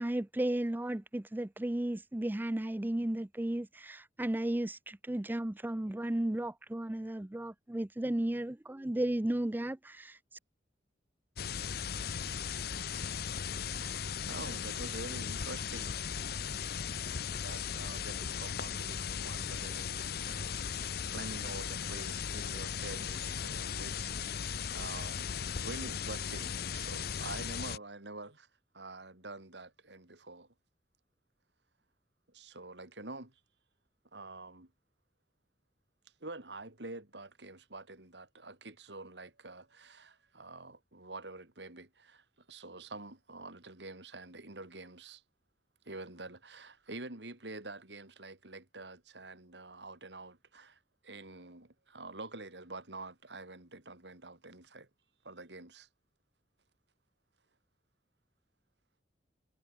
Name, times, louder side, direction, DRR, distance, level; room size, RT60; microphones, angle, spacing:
voice 1, 0.0-10.2, right 1 dB, 10° right, 0.4 m, -34 dB
sound 1, 11.4-27.8, left 7 dB, 60° left, 0.7 m, -37 dB
voice 2, 13.5-16.0 16.9-25.3 25.6-28.5 28.7-30.5 32.3-33.3 34.1-34.7 36.2-45.2 45.9-54.9 55.2-55.9, right 2 dB, 85° right, 3.9 m, -47 dB
head